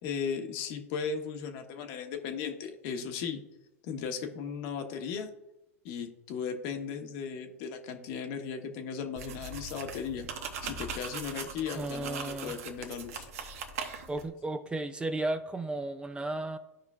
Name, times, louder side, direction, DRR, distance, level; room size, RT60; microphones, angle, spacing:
voice 1, 0.0-3.4 3.8-5.3 5.8-10.3 10.6-13.3, left 6 dB, 55° left, 5 dB, 1.1 m, -36 dB
sound 1, 9.2-14.3, right 5 dB, 70° right, 1.0 m, -40 dB
voice 2, 11.7-12.5 14.1-16.6, right 2 dB, 10° right, 9 dB, 0.5 m, -34 dB
13.0 x 5.0 x 2.4 m, 0.95 s
hypercardioid pair, 100°, 8 cm